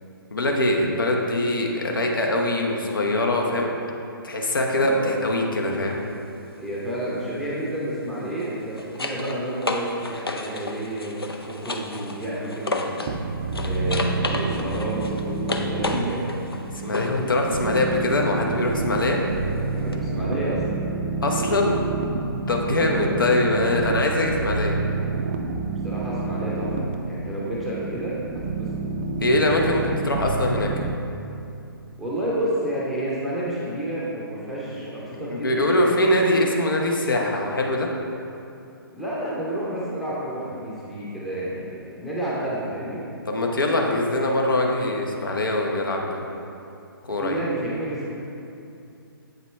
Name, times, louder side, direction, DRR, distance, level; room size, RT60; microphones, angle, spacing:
voice 1, 0.3-3.7 4.2-6.0 16.8-19.2 21.2-21.7 22.5-24.7 29.2-30.7 35.3-37.9 43.3-46.2 47.0-47.4, left 1 dB, 60° left, 1 dB, 0.9 m, -23 dB
voice 2, 4.7-5.2 6.6-13.1 13.6-16.3 19.7-20.6 21.4-21.5 22.8-23.2 25.8-28.7 32.0-36.0 38.9-43.0 47.2-48.1, right 1 dB, ahead, -8 dB, 0.7 m, -30 dB
sound 1, 5.7-6.0 8.3-13.2 13.5-17.3 19.9-20.0, left 2 dB, 80° left, 0.5 m, -32 dB
sound 2, 13.1-30.9, right 3 dB, 35° right, 0.4 m, -28 dB
7.8 x 5.1 x 3.2 m, 2.7 s
figure-of-eight pair, 130°, 12 cm